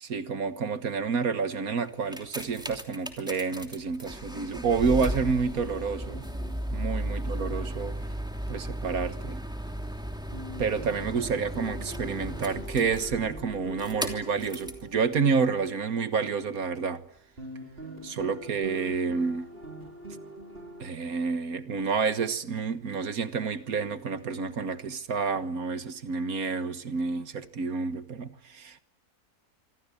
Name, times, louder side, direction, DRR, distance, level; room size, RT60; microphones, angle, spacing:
voice 1, 0.0-6.2 6.7-7.9 8.5-9.4 10.6-17.0 18.0-19.5 20.8-28.8, right 5 dB, 75° right, 1.9 m, -29 dB
sound 1, 1.9-14.9 15.6-15.7, equal, 5° right, 3.0 m, -35 dB
sound 2, 6.0-9.9 10.3-17.1 17.4-20.9, right 1 dB, 40° right, 4.5 m, -45 dB
28.0 x 25.5 x 8.4 m
omnidirectional pair, 1.5 m